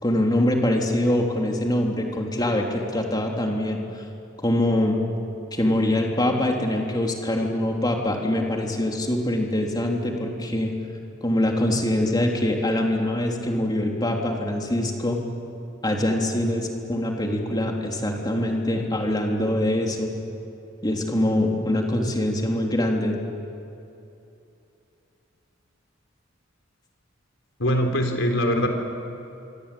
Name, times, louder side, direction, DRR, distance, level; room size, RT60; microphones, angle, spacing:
voice 1, 0.0-3.8 4.4-5.0 5.5-10.7 11.2-15.2 15.8-20.1 20.8-23.2, left 1 dB, 20° left, 0 dB, 3.5 m, -24 dB
voice 2, 27.6-28.7, equal, 80° left, 4 dB, 3.9 m, -22 dB
27.0 x 23.5 x 8.7 m, 2.7 s
head